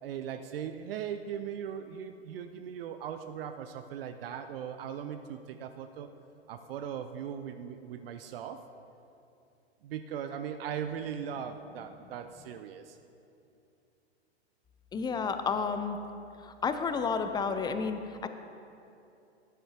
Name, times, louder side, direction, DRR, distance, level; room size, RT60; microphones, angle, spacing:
voice 1, 0.0-6.1 6.5-8.6 9.8-13.0, right 8 dB, 60° right, 8 dB, 0.6 m, -39 dB
voice 2, 14.9-16.0 16.4-18.3, left 5 dB, 15° left, 8 dB, 0.5 m, -31 dB
13.0 x 10.0 x 2.9 m, 2.7 s
hypercardioid pair, 100°, 32 cm